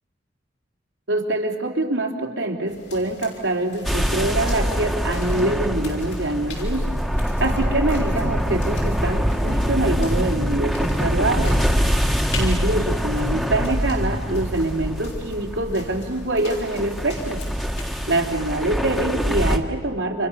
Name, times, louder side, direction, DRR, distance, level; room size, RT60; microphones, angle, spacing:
voice 1, 1.1-6.9 7.4-11.6 12.4-17.4 18.1-20.3, right 2 dB, 90° right, 2 dB, 3.5 m, -24 dB
sound 1, 2.7-17.8, left 3 dB, 70° left, 6.1 m, -41 dB
sound 2, 3.8-19.6, equal, ahead, 1.6 m, -24 dB
30.0 x 27.0 x 7.0 m, 1.4 s
head